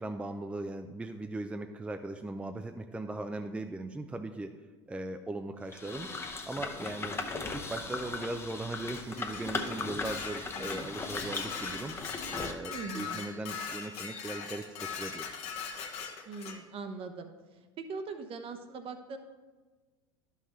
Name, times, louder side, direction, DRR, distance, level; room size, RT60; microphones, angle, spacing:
voice 1, 0.0-4.6 4.9-6.1 6.4-7.2 7.5-12.0 12.3-15.4, right 2 dB, 10° right, 6 dB, 0.4 m, -39 dB
sound 1, 5.7-12.5, left 3 dB, 15° left, 0.8 m, -38 dB
Dishes pots and pans, 8.9-16.6, left 6 dB, 50° left, 1.2 m, -40 dB
voice 2, 12.7-13.3 16.3-19.2, right 4 dB, 40° right, 7 dB, 0.9 m, -41 dB
11.5 x 5.7 x 3.1 m, 1.3 s
hypercardioid pair, 80°, 14 cm